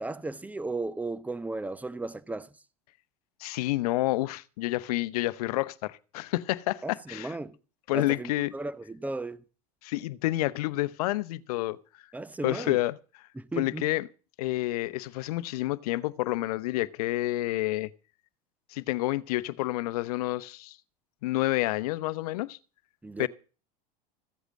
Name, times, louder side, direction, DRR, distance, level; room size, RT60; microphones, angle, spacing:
voice 1, 0.0-2.5 6.8-7.6 7.9-9.4 12.1-12.8 13.3-13.9 23.0-23.3, right 2 dB, 10° right, 0.9 m, -35 dB
voice 2, 3.4-7.4 7.9-8.5 9.8-11.8 12.4-13.0 13.6-14.1 14.4-17.9 18.7-20.8 21.2-22.6 23.2-23.3, left 18 dB, 75° left, 0.8 m, -29 dB
15.0 x 8.1 x 7.5 m
hypercardioid pair, 95°, 20 cm